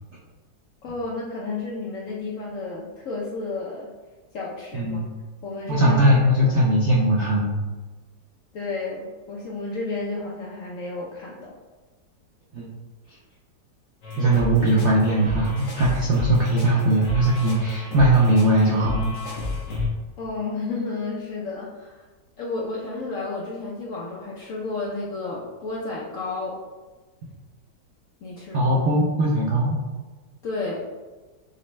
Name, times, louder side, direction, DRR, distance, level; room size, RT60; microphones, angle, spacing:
voice 1, 0.8-3.9 4.3-5.0 5.4-6.0 6.4-6.6 8.5-11.6 20.2-22.1 22.4-26.6 28.2-28.9 30.4-30.8, left 3 dB, 70° left, -3 dB, 0.8 m, -32 dB
voice 2, 5.7-7.5 12.5-12.7 14.2-19.1 28.5-29.8, right 1 dB, 70° right, -5 dB, 0.6 m, -20 dB
sound 1, 14.0-19.9, left 3 dB, 85° left, 1.9 m, -31 dB
6.5 x 2.2 x 3.1 m, 1.3 s
omnidirectional pair, 2.0 m